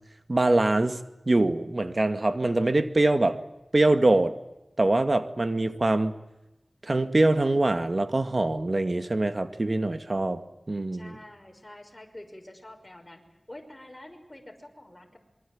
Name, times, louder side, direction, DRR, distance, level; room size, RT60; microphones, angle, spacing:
voice 1, 0.3-1.0 1.3-3.4 3.7-4.3 4.8-6.2 6.8-10.4 10.7-11.2, right 2 dB, 50° right, 9 dB, 2.2 m, -23 dB
voice 2, 10.9-15.2, left 1 dB, 25° left, 3 dB, 5.9 m, -47 dB
27.0 x 22.5 x 8.8 m, 0.94 s
wide cardioid pair, 50°, 0 cm